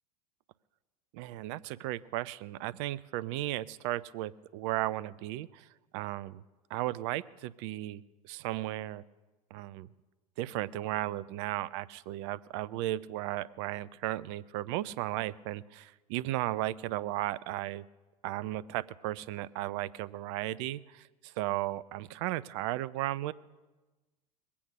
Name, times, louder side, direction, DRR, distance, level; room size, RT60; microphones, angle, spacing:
voice 1, 1.1-5.7 5.9-6.4 6.7-9.0 9.5-9.9 10.4-17.8 18.2-23.3, right 15 dB, 50° right, 18 dB, 0.5 m, -35 dB
21.0 x 8.6 x 6.0 m, 1.2 s
figure-of-eight pair, 80°, 19 cm